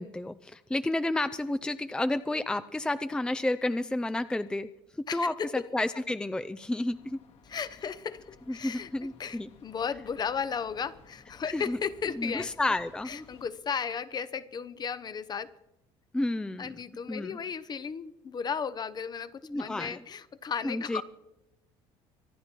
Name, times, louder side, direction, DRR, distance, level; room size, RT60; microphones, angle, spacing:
voice 1, 0.0-4.7 5.1-7.2 8.5-9.5 11.5-11.8 12.1-13.3 16.1-16.7 17.1-17.4 19.4-20.0 20.6-21.0, left 2 dB, 5° left, 12 dB, 0.5 m, -31 dB
voice 2, 5.1-5.6 7.4-12.6 13.0-15.6 16.6-21.0, left 6 dB, 35° left, 15 dB, 0.9 m, -35 dB
sound 1, 6.8-13.5, left 5 dB, 55° left, 2.0 m, -57 dB
24.5 x 10.0 x 4.5 m, 0.87 s
supercardioid pair, 90°, 12 cm